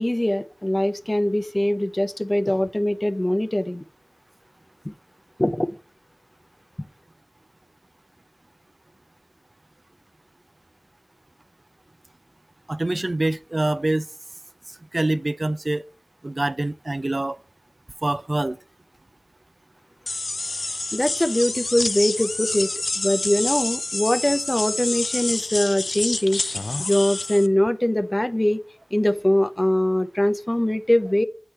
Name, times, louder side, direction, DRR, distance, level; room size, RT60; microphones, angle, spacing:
voice 1, 0.0-3.8 4.8-4.9 5.4-5.8 20.9-26.4 26.8-28.6 28.9-31.2, left 1 dB, 30° left, 0.6 m, -22 dB
voice 2, 12.7-14.1 14.9-15.8 16.2-17.4 18.0-18.6, right 2 dB, 55° right, 0.3 m, -25 dB
sound 1, 20.1-27.5, left 2 dB, 80° left, 0.4 m, -28 dB
8.1 x 4.5 x 3.1 m
wide cardioid pair, 45°, 0 cm